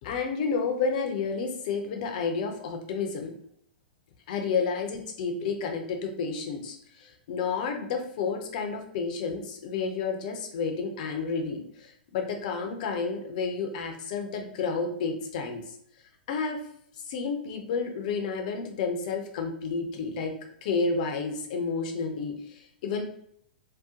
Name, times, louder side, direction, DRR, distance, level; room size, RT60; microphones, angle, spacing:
voice 1, 0.0-3.4 4.3-15.6 16.3-16.6 17.0-20.3 20.6-23.0, left 5 dB, 50° left, 4 dB, 0.7 m, -31 dB
2.8 x 2.1 x 3.7 m, 0.70 s
figure-of-eight pair, 110°, 5 cm